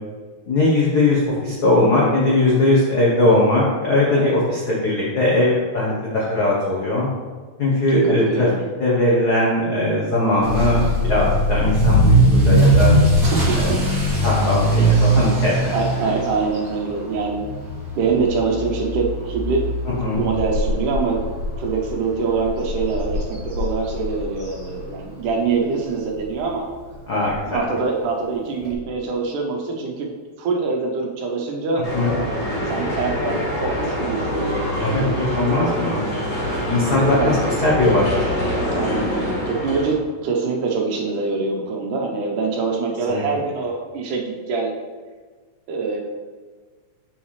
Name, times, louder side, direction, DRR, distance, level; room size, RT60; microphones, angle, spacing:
voice 1, 0.5-7.1 7.6-8.5 8.8-12.9 14.2-15.7 20.0-20.2 27.1-27.6 31.9-32.1 34.8-36.0 36.6-38.2 43.1-43.2, left 2 dB, 80° left, -5 dB, 0.9 m, -19 dB
voice 2, 7.9-8.6 13.2-13.8 15.7-17.5 18.0-19.7 20.1-21.2 21.6-26.7 27.4-30.1 30.4-31.8 32.7-35.2 36.8-37.4 38.7-44.7 45.7-46.0, right 4 dB, 85° right, 1 dB, 2.5 m, -24 dB
Motor vehicle (road) / Accelerating revving vroom, 10.4-25.3 25.6-26.0 26.5-26.6 26.9-27.0 27.2-27.3 28.6-28.7, right 1 dB, 35° right, 2.2 m, -20 dB
sound 1, 31.8-39.9, left 1 dB, 25° left, 2.2 m, -25 dB
7.6 x 6.1 x 3.2 m, 1.5 s
omnidirectional pair, 3.5 m